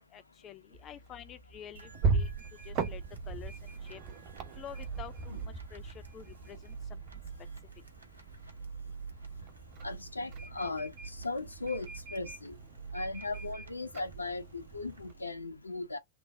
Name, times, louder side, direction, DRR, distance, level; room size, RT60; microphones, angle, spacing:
voice 1, 0.0-2.3 2.7-3.0 3.3-3.5 3.8-4.0 4.6-7.0, left 10 dB, 30° left, 0.4 m, -48 dB
sound 1, 0.7-15.1, right 4 dB, 40° right, 0.9 m, -39 dB
sound 2, 1.8-15.3, right 5 dB, 80° right, 0.8 m, -47 dB
voice 2, 9.8-10.9 11.2-12.5 12.9-16.0, left 3 dB, 80° left, 0.6 m, -37 dB
3.2 x 2.2 x 3.5 m
figure-of-eight pair, 90°, 0 cm